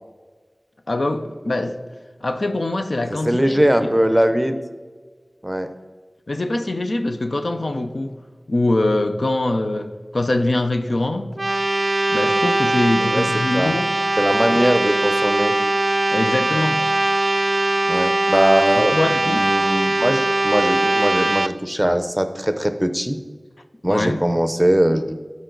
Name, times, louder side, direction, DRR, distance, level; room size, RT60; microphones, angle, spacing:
voice 1, 0.9-1.8 2.2-3.9 6.3-8.2 8.5-11.3 12.1-13.9 16.1-16.9 18.8-19.5 23.9-24.2, left 2 dB, 75° left, 7 dB, 0.6 m, -23 dB
voice 2, 3.2-4.6 5.4-5.7 13.0-13.3 13.5-13.8 14.2-15.6 17.9-19.0 19.3-23.2 23.8-25.2, equal, 10° right, 9 dB, 0.7 m, -20 dB
sound 1, 11.3-21.5, right 2 dB, 45° right, 0.3 m, -20 dB
12.5 x 4.7 x 3.9 m, 1.4 s
wide cardioid pair, 50°, 0 cm